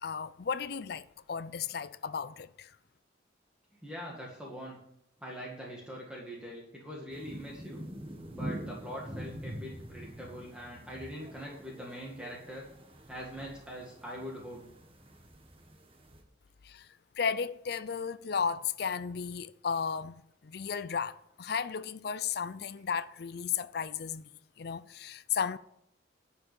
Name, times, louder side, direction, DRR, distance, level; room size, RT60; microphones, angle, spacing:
voice 1, 0.0-2.7 16.6-16.9 17.2-24.2 24.6-25.6, left 6 dB, 55° left, 0.5 m, -34 dB
voice 2, 3.8-4.8 5.2-7.8 8.3-12.7 13.1-14.7, equal, 5° right, 2.0 m, -43 dB
sound 1, 7.1-16.2, right 1 dB, 30° right, 1.5 m, -45 dB
11.0 x 5.6 x 8.7 m
head